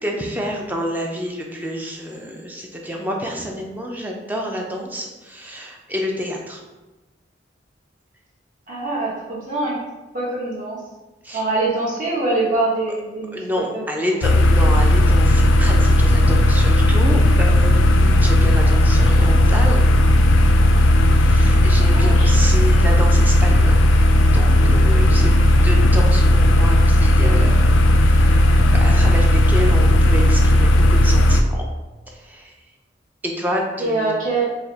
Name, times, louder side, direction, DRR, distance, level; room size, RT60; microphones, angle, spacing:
voice 1, 0.0-6.6 11.2-11.4 13.3-19.8 21.2-25.4 25.6-31.7 32.1-32.6 33.2-34.1, equal, 10° right, 0 dB, 0.4 m, -28 dB
voice 2, 8.7-9.8 10.1-10.8 11.3-13.3 13.7-13.8 21.9-22.3 33.8-34.5, right 2 dB, 45° right, -6 dB, 1.0 m, -23 dB
sound 1, 14.2-31.4, left 1 dB, 85° left, 0.3 m, -14 dB
4.8 x 2.1 x 2.7 m, 1.1 s
head